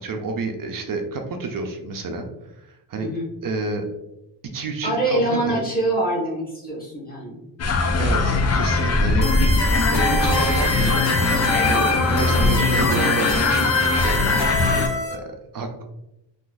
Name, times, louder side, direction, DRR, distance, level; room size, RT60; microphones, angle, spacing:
voice 1, 0.0-3.1 3.4-3.8 4.5-5.6 8.0-9.6 9.9-11.0 11.7-13.6 13.9-15.2 15.5-15.8, right 3 dB, 50° right, 4 dB, 0.5 m, -29 dB
voice 2, 4.8-7.4, right 1 dB, 20° left, -5 dB, 1.3 m, -24 dB
sound 1, 7.6-14.9, left 3 dB, 40° left, 0.4 m, -20 dB
sound 2, 9.2-15.1, left 1 dB, 80° left, 0.9 m, -26 dB
sound 3, 10.1-14.4, right 2 dB, ahead, 0.8 m, -32 dB
3.8 x 2.5 x 2.4 m, 0.89 s
wide cardioid pair, 120°, 44 cm